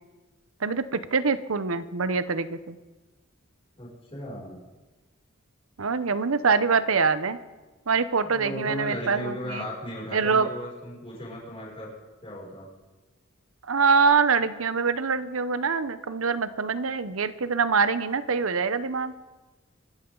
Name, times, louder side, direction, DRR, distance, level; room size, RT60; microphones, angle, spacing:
voice 1, 0.6-2.8 5.8-7.4 7.9-9.7 10.1-10.5 13.6-19.1, right 5 dB, 85° right, 13 dB, 0.8 m, -24 dB
voice 2, 3.8-4.6 8.3-11.9 12.2-12.7, equal, 30° left, -4 dB, 6.2 m, -36 dB
25.0 x 13.0 x 3.9 m, 1.2 s
head